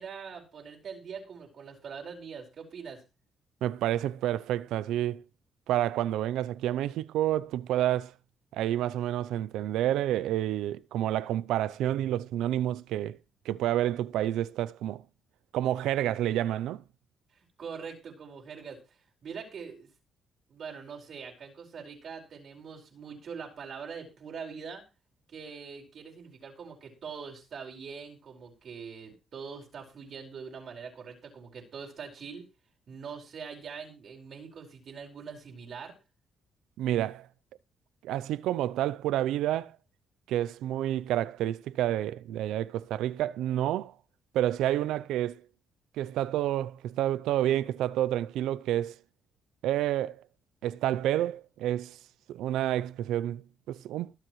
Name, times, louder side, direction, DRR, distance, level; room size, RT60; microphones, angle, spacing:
voice 1, 0.0-3.0 17.3-19.9 20.5-24.8 25.3-32.5 32.9-35.9, right 6 dB, 60° right, 4.9 m, -43 dB
voice 2, 3.6-5.2 5.7-8.1 8.5-13.2 13.5-15.0 15.5-16.8 36.8-37.3 38.0-39.7 40.3-43.9 44.3-45.4 46.0-48.9 49.6-50.2 50.6-52.0 52.3-54.1, right 12 dB, 90° right, 0.5 m, -29 dB
22.0 x 7.6 x 3.2 m
cardioid pair, 90°, 0 cm